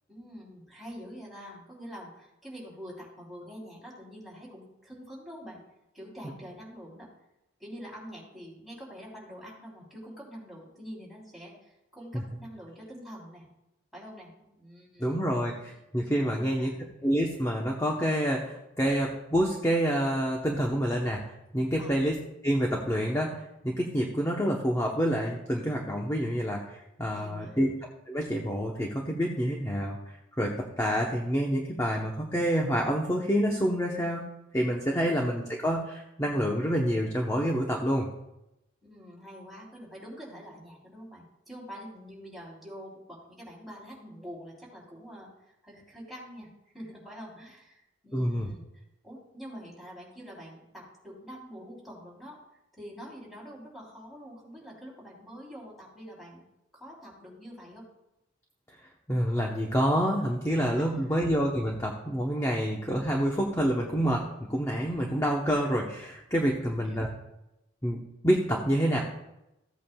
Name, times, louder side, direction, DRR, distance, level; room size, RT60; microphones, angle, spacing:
voice 1, 0.1-5.6 5.9-7.1 7.6-13.5 13.9-15.3 16.2-16.7 21.8-22.0 27.1-27.7 38.8-52.4 52.7-56.4 56.7-57.8 66.6-67.1, equal, ahead, -5 dB, 3.5 m, -46 dB
voice 2, 15.0-16.7 17.0-22.2 22.4-27.7 28.1-30.0 30.4-34.2 34.5-38.1 48.1-48.5 59.1-67.1 67.8-69.0, equal, 15° left, -1 dB, 0.9 m, -27 dB
15.5 x 8.4 x 2.3 m, 0.89 s
head